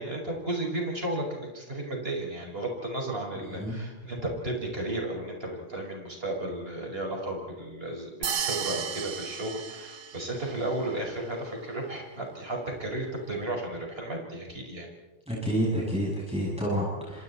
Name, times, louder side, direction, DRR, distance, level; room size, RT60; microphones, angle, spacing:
voice 1, 0.0-14.9, right 1 dB, 50° right, 1 dB, 5.9 m, -34 dB
voice 2, 3.4-3.8 15.3-17.2, equal, 5° right, -5 dB, 7.2 m, -29 dB
sound 1, 8.2-10.5, right 7 dB, 90° right, 1.4 m, -33 dB
27.5 x 27.5 x 4.4 m, 1.2 s
omnidirectional pair, 1.3 m